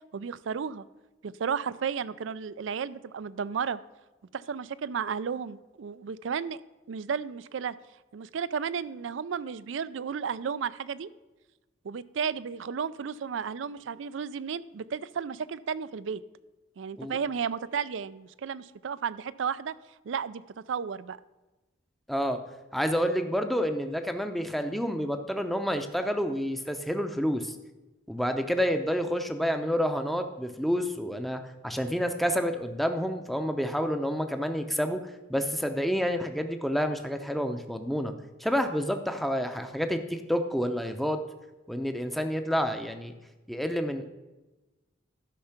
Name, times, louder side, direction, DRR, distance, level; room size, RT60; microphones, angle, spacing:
voice 1, 0.1-0.9 1.2-3.8 4.3-6.6 6.9-7.8 8.1-11.1 11.8-16.2 16.8-19.7 20.1-20.4 20.7-21.2, right 6 dB, 80° right, 16 dB, 0.4 m, -33 dB
voice 2, 22.1-22.4 22.7-27.5 28.1-35.0 35.3-38.1 38.4-41.2 41.7-43.1 43.5-44.1, equal, ahead, 6 dB, 0.6 m, -29 dB
12.5 x 5.6 x 5.8 m, 1.1 s
head